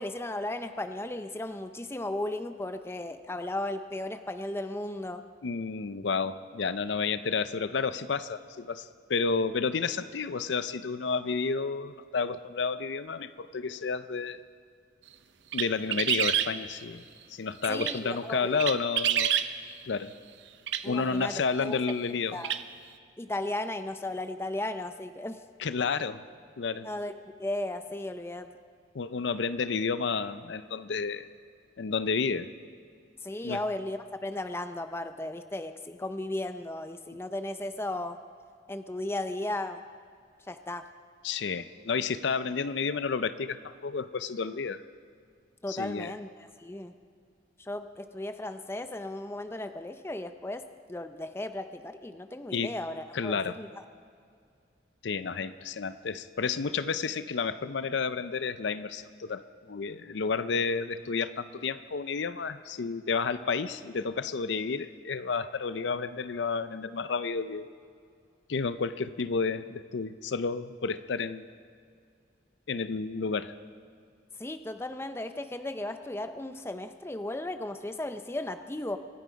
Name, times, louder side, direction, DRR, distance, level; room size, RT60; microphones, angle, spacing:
voice 1, 0.0-5.2 17.7-18.6 20.8-21.3 21.6-21.7 22.3-22.5 23.2-25.4 26.8-27.1 27.4-28.5 33.2-38.2 38.7-39.8 40.5-40.9 45.6-46.3 46.6-46.9 47.6-53.7 74.4-79.0, left 1 dB, 15° left, 9 dB, 0.5 m, -35 dB
voice 2, 5.4-14.4 15.5-17.0 17.3-19.4 19.9-20.1 20.9-22.4 25.6-26.2 26.6-26.9 28.9-31.3 31.8-32.5 33.4-33.6 41.2-44.8 45.7-46.2 52.5-52.7 53.1-53.6 55.0-67.7 68.5-71.5 72.7-73.5, left 5 dB, 75° left, 13 dB, 0.5 m, -31 dB
sound 1, 15.5-16.5 17.6-18.0 18.6-19.5 20.7-20.8 21.9-22.0 22.4-22.6, right 10 dB, 75° right, 0.6 m, -27 dB
24.5 x 9.4 x 5.2 m, 2.3 s
head